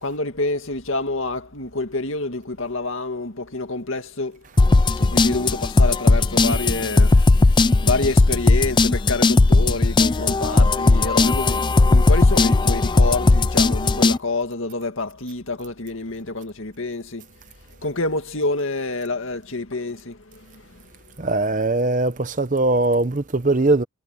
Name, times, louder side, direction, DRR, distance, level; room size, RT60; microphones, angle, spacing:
voice 1, 0.0-4.4 5.0-17.3 17.8-20.8, left 2 dB, 65° left, 2.1 m, -28 dB
sound 1, 4.6-14.2, left 3 dB, 20° left, 0.3 m, -17 dB
voice 2, 21.2-23.8, right 2 dB, 35° right, 0.9 m, -20 dB
head